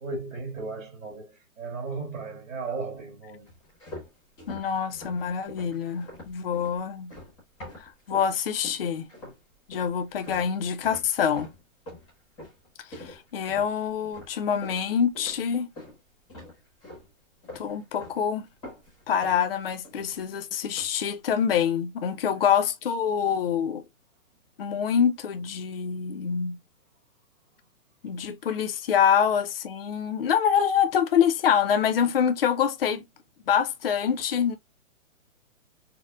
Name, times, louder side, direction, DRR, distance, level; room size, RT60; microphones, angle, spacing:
voice 1, 0.0-3.5, right 3 dB, 70° right, 2.1 m, -35 dB
sound 1, 3.5-8.3 8.6-9.4 9.7-16.0 16.3-17.1 17.4-18.2 18.5-20.3 20.7-21.0, left 1 dB, 5° left, 0.6 m, -45 dB
voice 2, 4.5-7.1 7.8-9.1 9.7-11.5 12.9-15.7 17.5-18.5 19.1-23.8 24.6-26.6 28.0-33.1 33.5-34.5, left 8 dB, 45° left, 0.4 m, -25 dB
4.2 x 2.1 x 2.4 m
hypercardioid pair, 175°, 41 cm